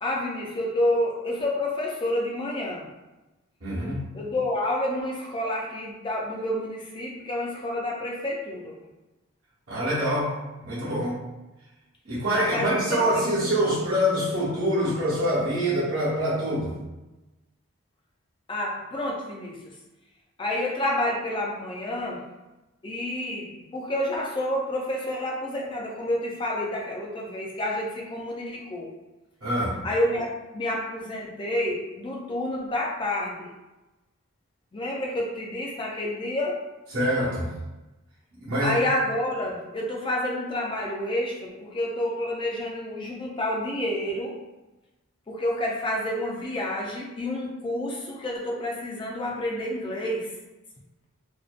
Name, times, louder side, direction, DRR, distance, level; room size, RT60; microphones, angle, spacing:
voice 1, 0.0-2.8 4.1-8.7 12.3-13.5 18.5-19.6 20.4-22.2 22.8-28.9 29.8-33.5 34.7-36.6 38.6-44.3 45.3-50.3, left 1 dB, 20° left, -2 dB, 0.3 m, -29 dB
voice 2, 3.6-4.0 9.7-10.4 10.6-11.2 12.0-16.7 29.4-29.8 36.9-37.5 38.4-38.8, equal, 55° right, -13 dB, 0.8 m, -25 dB
2.5 x 2.1 x 2.4 m, 1.0 s
head